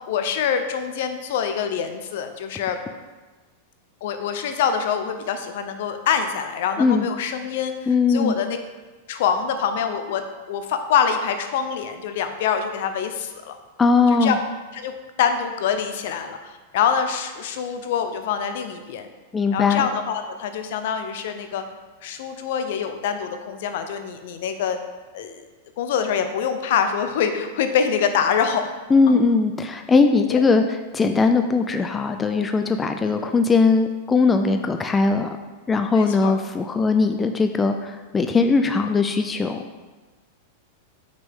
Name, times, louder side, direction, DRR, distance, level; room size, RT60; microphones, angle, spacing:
voice 1, 0.1-2.8 4.0-7.7 8.1-8.6 9.1-13.6 14.2-14.4 14.7-14.9 15.2-19.1 19.5-21.6 22.0-24.8 25.1-25.4 25.8-28.7 29.1-29.2 30.3-30.4 33.0-33.1 35.9-36.3, left 7 dB, 65° left, 8 dB, 0.6 m, -25 dB
voice 2, 7.9-8.4 13.8-14.4 19.3-19.9 28.9-35.4 35.7-39.6, left 4 dB, 15° left, 6 dB, 0.3 m, -19 dB
6.0 x 5.2 x 3.6 m, 1.3 s
supercardioid pair, 135°, 0 cm